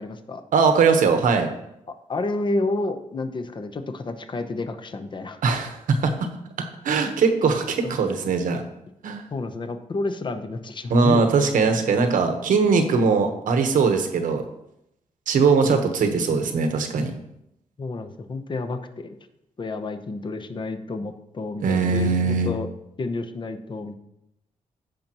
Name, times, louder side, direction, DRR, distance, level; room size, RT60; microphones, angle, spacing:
voice 1, 0.0-0.4 2.1-5.4 7.8-8.0 9.3-11.2 15.6-15.8 17.8-19.1 19.6-22.7 23.0-23.9, left 3 dB, 35° left, 8 dB, 0.8 m, -30 dB
voice 2, 0.5-1.5 5.4-6.3 6.8-8.6 9.0-9.2 10.9-14.4 15.3-17.1 21.6-22.5, right 5 dB, 80° right, 6 dB, 1.1 m, -20 dB
15.0 x 5.4 x 3.0 m, 0.84 s
cardioid pair, 105°, 14 cm